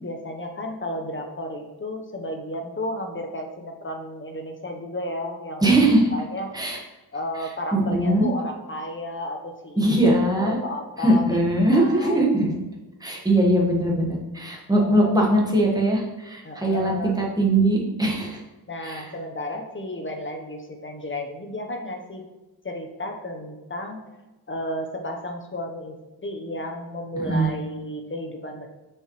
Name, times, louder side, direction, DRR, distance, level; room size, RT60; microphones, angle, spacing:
voice 1, 0.0-6.6 7.1-11.4 11.7-12.3 14.7-15.3 16.4-17.1 18.7-22.2 22.6-24.0 24.5-28.7, left 1 dB, 30° left, 3 dB, 0.9 m, -33 dB
voice 2, 5.6-6.0 6.5-6.8 7.7-8.3 9.8-10.6 11.0-12.5 13.0-18.4 18.8-19.0 27.3-27.5, right 1 dB, 10° right, -2 dB, 1.4 m, -21 dB
6.0 x 5.0 x 3.1 m, 1.1 s
wide cardioid pair, 80°, 40 cm